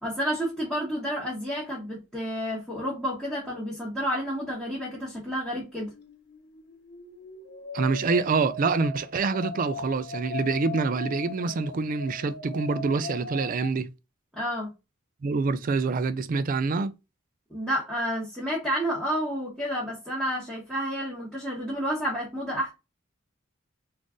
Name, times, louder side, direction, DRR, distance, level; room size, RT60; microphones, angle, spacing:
voice 1, 0.0-5.9 14.3-14.7 17.5-22.7, equal, ahead, 1.2 m, -30 dB
sound 1, 4.6-5.6 5.9-13.7, left 4 dB, 55° left, 0.7 m, -39 dB
voice 2, 7.7-13.9 15.2-16.9, right 4 dB, 40° right, 0.3 m, -26 dB
3.8 x 2.5 x 3.6 m
head